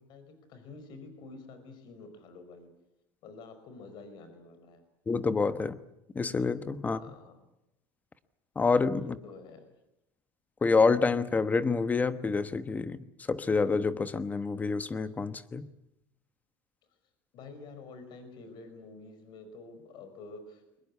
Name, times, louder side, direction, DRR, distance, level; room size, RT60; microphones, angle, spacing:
voice 1, 0.0-2.7 3.2-4.8 6.9-7.4 9.0-9.7 17.3-20.8, left 3 dB, 50° left, 5.1 m, -48 dB
voice 2, 5.1-5.8 6.1-7.0 8.5-9.1 10.6-13.0 13.3-15.7, left 4 dB, 15° left, 1.1 m, -27 dB
23.5 x 21.0 x 8.4 m
supercardioid pair, 135°, 10 cm